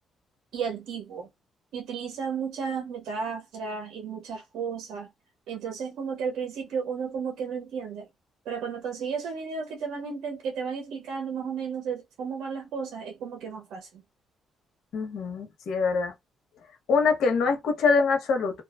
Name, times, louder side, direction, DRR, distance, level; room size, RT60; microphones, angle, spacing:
voice 1, 0.5-1.3 1.7-5.1 5.5-8.1 8.5-13.9, right 6 dB, 80° right, 0.6 m, -33 dB
voice 2, 14.9-16.1 16.9-18.6, left 4 dB, 75° left, 0.9 m, -24 dB
2.5 x 2.3 x 2.3 m
cardioid pair, 90°, 0 cm